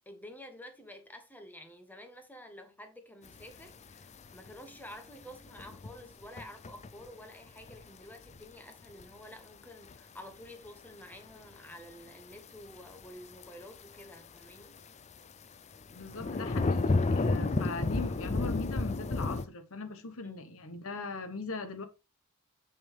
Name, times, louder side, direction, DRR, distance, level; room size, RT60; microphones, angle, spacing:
voice 1, 0.0-14.8 20.2-20.5, left 1 dB, 10° left, 1.2 m, -50 dB
sound 1, 3.3-3.4 4.0-4.5 5.2-6.0 6.2-7.1 7.6-7.8 8.3-9.0 9.9-10.0 11.7-11.8 12.1-12.3 12.9-13.0 13.4-14.0 14.6-14.8 15.8-19.4, left 3 dB, 30° left, 0.5 m, -31 dB
voice 2, 15.9-21.8, left 3 dB, 65° left, 1.2 m, -40 dB
6.3 x 6.3 x 3.3 m
head